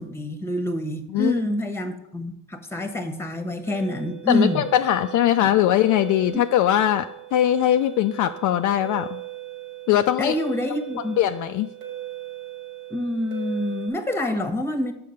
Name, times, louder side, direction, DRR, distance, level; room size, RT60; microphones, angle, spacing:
voice 1, 0.0-4.6 6.3-6.4 10.2-11.2 12.9-14.9, left 1 dB, 5° left, 7 dB, 1.1 m, -26 dB
sound 1, 3.6-13.9, right 15 dB, 90° right, 2.2 m, -38 dB
voice 2, 4.3-9.2 9.9-10.3 11.2-11.7, left 12 dB, 55° left, 7 dB, 0.4 m, -21 dB
6.8 x 5.2 x 6.4 m, 0.83 s
supercardioid pair, 85°, 38 cm